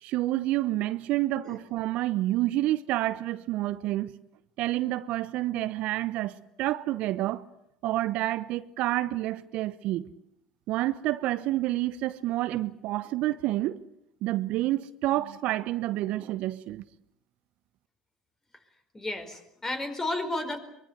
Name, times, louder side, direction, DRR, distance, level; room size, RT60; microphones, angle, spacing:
voice 1, 0.0-4.1 4.6-7.4 7.8-10.1 10.7-13.8 14.2-16.8, right 15 dB, 60° right, 0.9 m, -29 dB
voice 2, 18.9-20.6, left 2 dB, 20° left, 4.7 m, -32 dB
24.0 x 23.0 x 8.1 m
hypercardioid pair, 70°, 3 cm